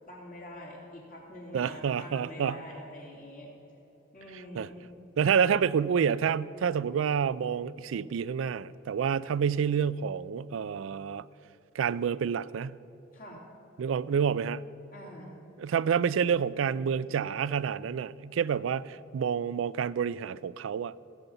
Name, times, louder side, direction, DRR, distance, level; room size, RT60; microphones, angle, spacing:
voice 1, 0.1-3.5 4.1-4.8 13.1-13.4 14.9-15.4, left 1 dB, 45° left, -3 dB, 3.1 m, -45 dB
voice 2, 1.5-2.6 4.5-4.7 5.2-11.2 11.7-12.8 13.8-14.6 15.6-20.9, right 7 dB, 75° right, 19 dB, 0.3 m, -28 dB
15.5 x 5.6 x 8.0 m, 3.0 s
head